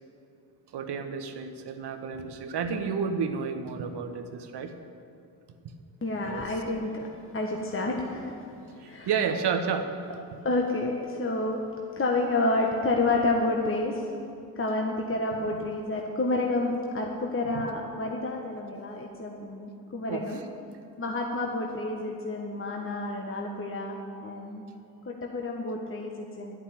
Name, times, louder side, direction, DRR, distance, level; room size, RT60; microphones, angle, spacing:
voice 1, 0.7-4.7 6.2-6.5 8.8-9.9 20.1-20.2, right 6 dB, 55° right, 7 dB, 1.1 m, -31 dB
voice 2, 6.0-9.2 10.4-11.6 12.0-14.1 14.5-20.4 21.0-24.6 25.0-26.6, left 2 dB, 25° left, 0 dB, 1.4 m, -29 dB
11.0 x 6.0 x 8.7 m, 2.6 s
hypercardioid pair, 50°, 48 cm